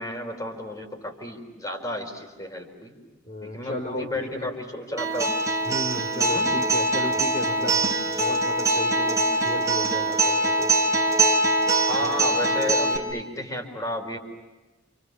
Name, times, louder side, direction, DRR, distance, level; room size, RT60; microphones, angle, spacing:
voice 1, 0.0-2.9 3.4-5.3 6.3-6.5 11.9-14.2, left 1 dB, 20° left, 4 dB, 4.7 m, -32 dB
voice 2, 3.2-4.5 5.6-10.7 12.0-12.1, equal, 40° left, 2 dB, 4.3 m, -34 dB
Acoustic guitar, 5.0-13.0, right 2 dB, 15° right, 3.4 m, -23 dB
29.0 x 29.0 x 7.0 m, 1.2 s
head